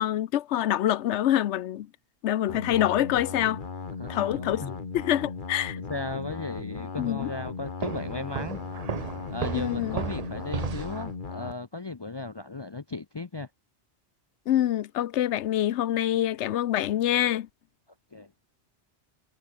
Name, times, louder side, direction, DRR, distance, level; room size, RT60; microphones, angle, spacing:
voice 1, 0.0-1.9 2.2-3.6 4.1-5.8 7.0-7.3 9.5-10.0 14.5-17.5, left 12 dB, 90° left, 1.0 m, -26 dB
sound 1, 2.5-11.5, left 4 dB, 45° left, 1.6 m, -37 dB
voice 2, 4.0-4.8 5.9-8.6 9.3-13.5 18.1-18.3, left 3 dB, 30° left, 0.5 m, -36 dB
Walk footsteps, 7.8-11.1, right 6 dB, 40° right, 0.8 m, -34 dB
omnidirectional pair, 1.2 m